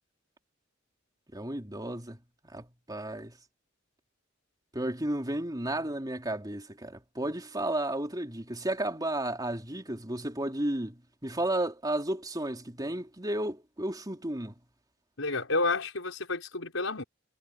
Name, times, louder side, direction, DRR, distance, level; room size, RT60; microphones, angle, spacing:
voice 1, 1.3-2.2 2.5-3.3 4.7-14.5, right 1 dB, 20° right, 3.6 m, -33 dB
voice 2, 15.2-17.0, left 3 dB, 85° left, 5.2 m, -30 dB
head